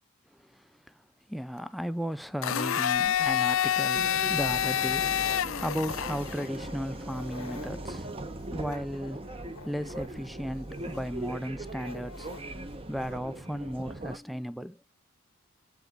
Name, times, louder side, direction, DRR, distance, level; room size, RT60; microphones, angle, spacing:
voice 1, 0.3-1.0 1.3-8.1 8.5-9.3 9.6-12.3 12.9-14.8, equal, ahead, 0.4 m, -35 dB
Domestic sounds home sounds, 2.4-6.4, left 10 dB, 65° left, 0.5 m, -27 dB
Dog, 3.0-13.2, left 3 dB, 85° left, 1.5 m, -49 dB
sound 1, 3.9-14.2, right 2 dB, 25° right, 0.9 m, -40 dB
8.2 x 7.9 x 4.0 m
head